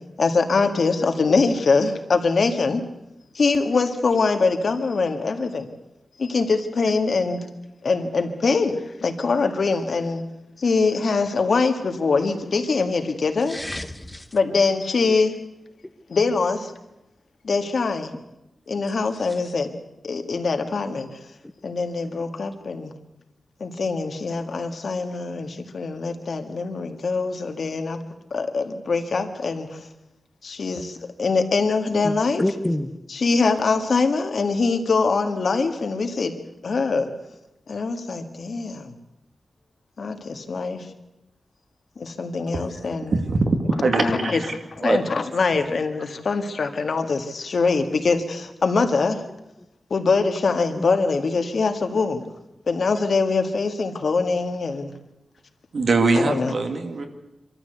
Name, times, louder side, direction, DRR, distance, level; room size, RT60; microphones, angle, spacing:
voice 1, 0.2-2.8 3.3-5.7 6.2-7.5 7.8-10.2 10.6-13.6 14.3-15.3 16.1-16.6 17.4-18.1 18.7-19.7 20.0-21.2 21.6-22.9 23.6-28.0 28.3-29.8 30.4-32.4 33.1-36.3 36.6-37.1 37.7-38.9 40.0-40.9 42.0-43.2 44.0-44.4 44.7-49.2 49.9-52.2 52.7-54.9 56.1-56.5, left 4 dB, 60° left, 6 dB, 1.9 m, -23 dB
voice 2, 13.5-14.3 15.0-15.1 19.2-19.4 30.7-30.8 31.9-32.9 34.0-34.9 44.2-44.4 50.7-51.0, left 1 dB, 10° left, 9 dB, 1.0 m, -30 dB
voice 3, 43.1-44.5 44.8-45.1 55.7-57.1, right 3 dB, 65° right, 6 dB, 2.2 m, -22 dB
25.5 x 13.5 x 8.1 m, 0.94 s
wide cardioid pair, 155°, 0 cm